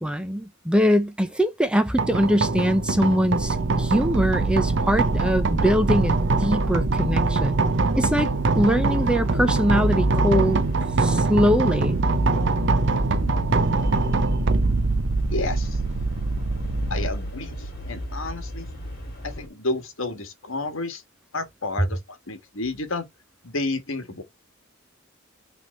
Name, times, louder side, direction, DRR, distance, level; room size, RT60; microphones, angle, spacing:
voice 1, 0.0-7.6 7.9-10.6 11.0-12.0, equal, 5° right, 0.6 m, -22 dB
sound 1, 2.0-19.2, right 3 dB, 55° right, 0.7 m, -25 dB
sound 2, 2.1-19.5, left 1 dB, 45° left, 3.1 m, -32 dB
sound 3, 3.4-17.1, right 2 dB, 75° right, 1.0 m, -28 dB
voice 2, 15.3-15.8 16.9-18.7 19.2-21.0 21.3-23.1 23.4-24.2, left 2 dB, 65° left, 1.6 m, -31 dB
5.9 x 3.5 x 5.4 m
head